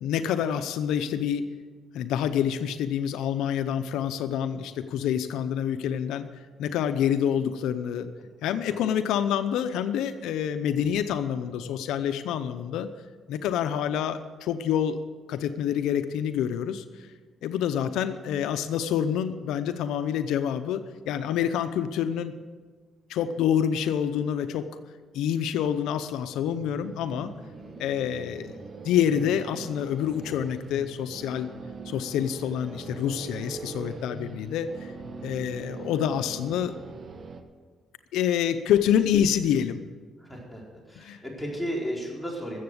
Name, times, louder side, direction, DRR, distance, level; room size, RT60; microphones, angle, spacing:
voice 1, 0.0-1.5 1.9-6.2 6.6-8.1 8.4-12.9 13.3-15.0 15.3-16.8 17.4-22.3 23.1-24.7 25.1-27.3 27.8-28.5 28.8-31.5 31.9-34.9 35.2-36.8 38.1-39.8 41.0-41.2, left 9 dB, 90° left, 10 dB, 0.7 m, -27 dB
sound 1, 26.5-37.4, right 4 dB, 50° right, 1.3 m, -42 dB
voice 2, 40.2-40.6 40.9-42.6, equal, ahead, -3 dB, 4.4 m, -34 dB
14.0 x 7.8 x 8.0 m, 1.4 s
cardioid pair, 90°, 0 cm